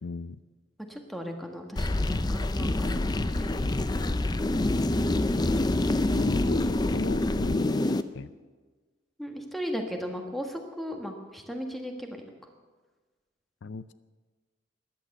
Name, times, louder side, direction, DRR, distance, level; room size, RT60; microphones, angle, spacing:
voice 1, 0.0-0.4 4.5-8.3 13.6-13.9, left 4 dB, 75° left, 15 dB, 0.5 m, -37 dB
voice 2, 0.9-3.0 3.4-3.7 9.2-12.2, equal, ahead, 3 dB, 1.6 m, -36 dB
sound 1, 1.8-8.0, left 2 dB, 20° left, 0.5 m, -26 dB
14.5 x 10.5 x 7.9 m, 1.3 s
head